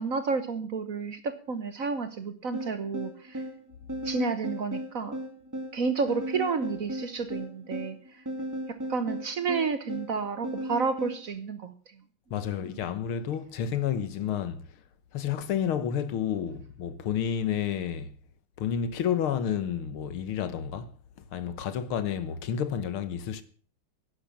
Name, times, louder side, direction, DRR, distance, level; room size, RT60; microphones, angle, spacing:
voice 1, 0.0-3.4 4.0-5.2 5.7-8.0 8.9-11.7 12.6-12.8, right 4 dB, 50° right, 1.2 m, -31 dB
sound 1, 2.5-11.2, equal, 10° right, 2.6 m, -36 dB
voice 2, 12.3-14.7 15.1-18.1 18.6-20.9 21.3-23.4, left 8 dB, 85° left, 2.0 m, -30 dB
11.5 x 10.5 x 7.1 m
omnidirectional pair, 2.3 m